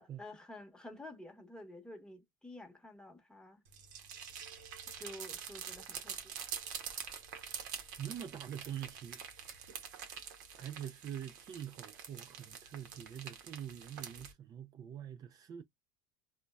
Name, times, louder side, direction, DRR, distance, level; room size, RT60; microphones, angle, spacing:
voice 1, 0.0-3.6 5.0-6.3, left 1 dB, 5° left, 1.0 m, -50 dB
sound 1, 3.7-14.3, right 7 dB, 80° right, 0.8 m, -46 dB
voice 2, 7.4-9.2 10.6-15.6, right 10 dB, 40° right, 0.4 m, -45 dB
3.8 x 2.2 x 2.2 m
hypercardioid pair, 85°, 10 cm